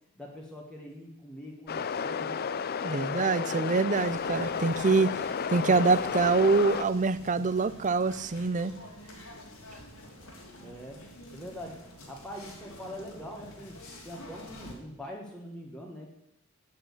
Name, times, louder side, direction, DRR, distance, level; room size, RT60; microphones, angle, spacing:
voice 1, 0.2-2.4 10.6-11.0 11.3-11.8 12.1-16.1, equal, 5° left, -2 dB, 1.4 m, -43 dB
sound 1, 1.7-6.8, left 6 dB, 45° left, 0.5 m, -32 dB
voice 2, 2.8-5.1 5.5-8.7, right 4 dB, 35° right, 15 dB, 0.5 m, -25 dB
sound 2, 3.9-14.7, left 1 dB, 90° left, 3.0 m, -48 dB
8.9 x 8.6 x 8.3 m, 0.84 s
head